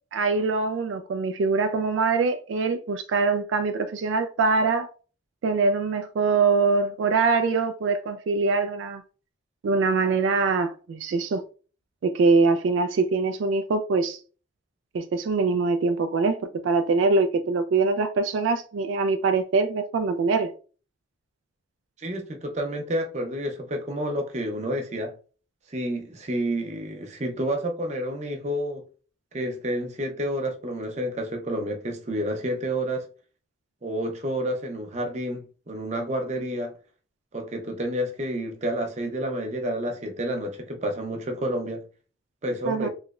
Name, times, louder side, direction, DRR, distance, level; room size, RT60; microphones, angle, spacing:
voice 1, 0.1-4.9 5.4-9.0 9.6-11.4 12.0-14.2 14.9-20.5 42.7-42.9, right 4 dB, 75° right, 0.3 m, -23 dB
voice 2, 22.0-25.1 25.7-28.8 29.3-33.0 33.8-36.7 37.3-41.8 42.4-42.9, equal, 35° right, 0.6 m, -29 dB
3.2 x 2.9 x 2.4 m
head